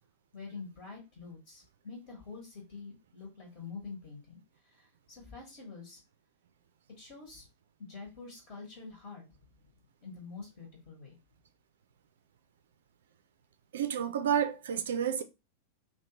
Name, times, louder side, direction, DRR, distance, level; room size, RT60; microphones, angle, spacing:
voice 1, 0.3-4.4 4.6-6.0 7.0-7.4 7.9-9.2 10.0-11.2, left 4 dB, 45° left, 1.4 m, -46 dB
voice 2, 13.7-15.2, right 9 dB, 60° right, 0.3 m, -30 dB
3.0 x 2.6 x 2.9 m
figure-of-eight pair, 90°, 0 cm